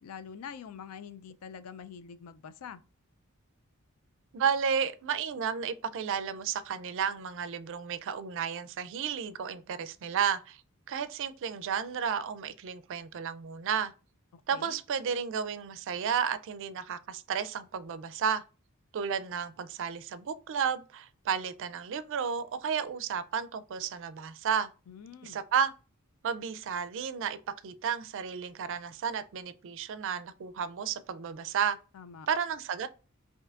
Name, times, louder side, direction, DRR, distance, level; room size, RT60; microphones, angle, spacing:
voice 1, 0.0-2.8 14.3-14.8 24.9-25.4 31.9-32.3, left 7 dB, 90° left, 0.4 m, -45 dB
voice 2, 4.3-10.6 10.9-13.9 14.5-18.4 18.9-24.7 25.2-25.7 26.2-27.4 27.6-31.8 32.3-32.9, right 7 dB, 60° right, 0.4 m, -32 dB
5.6 x 2.7 x 2.4 m
head